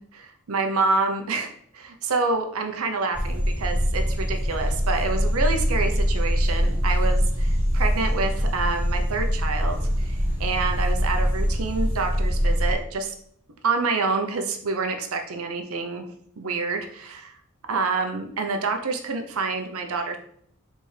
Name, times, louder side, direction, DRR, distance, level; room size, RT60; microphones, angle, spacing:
voice 1, 0.0-13.1 13.6-16.1 16.4-17.4 17.7-20.2, right 4 dB, 80° right, 5 dB, 0.7 m, -27 dB
sound 1, 3.1-12.7, equal, 10° right, 1.3 m, -23 dB
4.4 x 3.5 x 3.2 m, 0.66 s
head